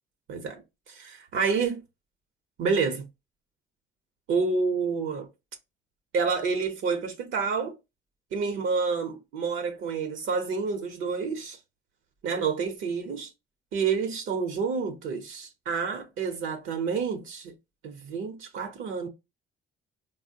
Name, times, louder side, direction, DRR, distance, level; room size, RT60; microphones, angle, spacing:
voice 1, 0.3-1.8 2.6-3.0 4.3-5.3 6.1-7.7 8.3-11.6 12.2-13.3 13.7-17.5 17.8-19.1, right 5 dB, 80° right, 0.7 m, -29 dB
4.2 x 2.1 x 2.6 m
cardioid pair, 90°, 20 cm